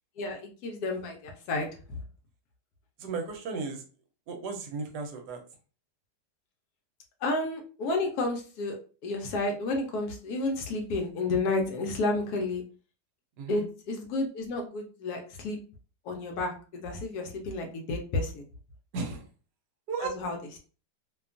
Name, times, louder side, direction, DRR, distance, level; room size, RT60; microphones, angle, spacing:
voice 1, 0.2-1.7 7.2-8.8 9.0-12.6 13.5-15.6 16.0-18.4 20.0-20.6, left 2 dB, 70° left, 3 dB, 1.0 m, -31 dB
voice 2, 3.0-3.8 4.3-5.4 13.4-13.6 18.9-19.3 19.9-20.2, right 4 dB, 75° right, 3 dB, 1.1 m, -35 dB
2.8 x 2.2 x 2.4 m, 0.37 s
omnidirectional pair, 1.9 m